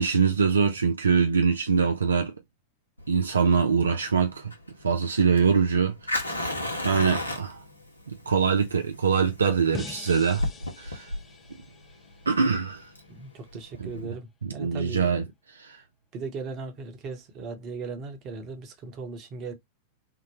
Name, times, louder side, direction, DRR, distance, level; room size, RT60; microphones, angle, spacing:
voice 1, 0.0-2.3 3.1-4.5 4.8-7.6 8.3-10.4 10.8-11.1 12.3-12.9 13.8-13.9 14.4-15.2 15.5-15.8, right 5 dB, 75° right, 0.4 m, -24 dB
Fire, 3.0-14.0, left 1 dB, 85° left, 0.8 m, -35 dB
sound 1, 9.7-12.9, left 4 dB, 20° left, 0.6 m, -43 dB
voice 2, 13.1-15.1 16.1-19.5, right 4 dB, 35° right, 1.0 m, -38 dB
3.7 x 2.1 x 2.9 m
figure-of-eight pair, 90°, 0 cm